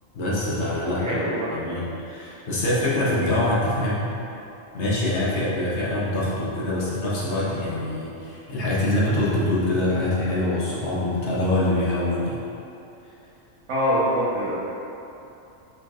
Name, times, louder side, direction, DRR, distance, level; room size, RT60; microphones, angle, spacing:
voice 1, 0.1-1.1 1.5-4.1 4.7-12.4, left 1 dB, 60° left, -7 dB, 1.0 m, -24 dB
voice 2, 1.0-1.5 13.7-14.5, equal, 75° right, -8 dB, 1.4 m, -24 dB
5.2 x 3.0 x 2.4 m, 2.9 s
omnidirectional pair, 1.4 m